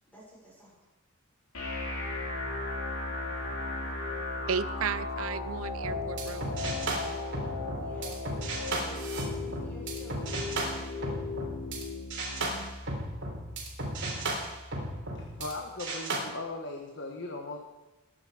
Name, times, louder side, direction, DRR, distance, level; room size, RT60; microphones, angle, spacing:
voice 1, 0.1-0.8 7.7-8.2 8.5-10.5, right 1 dB, 10° left, -6 dB, 6.5 m, -51 dB
sound 1, 1.5-15.5, left 3 dB, 85° left, 4.9 m, -37 dB
voice 2, 4.5-6.5, right 6 dB, 80° right, 15 dB, 0.6 m, -34 dB
sound 2, 5.8-11.8 12.1-15.5 15.8-16.2, right 2 dB, 60° right, 3.7 m, -35 dB
voice 3, 15.2-17.6, left 2 dB, 60° left, 2 dB, 1.4 m, -38 dB
21.0 x 9.4 x 5.0 m, 1.1 s
head